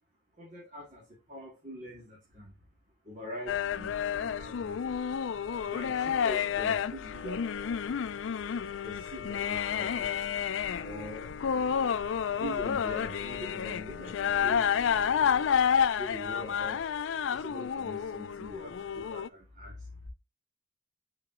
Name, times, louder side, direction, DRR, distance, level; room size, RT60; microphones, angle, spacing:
voice 1, 0.4-2.5 3.0-5.0 5.6-8.1 8.8-10.3 10.8-11.3 12.4-15.4 15.9-16.9 17.3-20.1, left 1 dB, 40° right, 2.2 m, -43 dB
sound 1, 3.5-19.3, left 7 dB, 80° left, 0.4 m, -30 dB
6.3 x 4.4 x 3.8 m
head